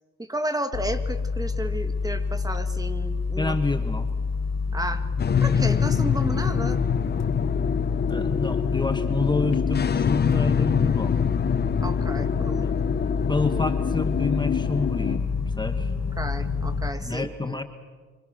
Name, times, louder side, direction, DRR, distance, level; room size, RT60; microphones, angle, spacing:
voice 1, 0.2-3.6 4.7-5.1 5.4-6.9 11.8-13.0 16.2-17.6, right 1 dB, 10° right, 8 dB, 2.1 m, -32 dB
sound 1, 0.7-16.9, left 4 dB, 55° left, 3.7 m, -28 dB
voice 2, 3.4-4.1 8.1-11.1 12.6-12.8 13.3-15.3 15.6-15.9 17.0-17.6, left 3 dB, 15° left, 7 dB, 1.5 m, -28 dB
sound 2, 5.2-15.2, left 7 dB, 35° left, 0.7 m, -26 dB
27.5 x 25.5 x 6.5 m, 1.4 s
cardioid pair, 90°, 30 cm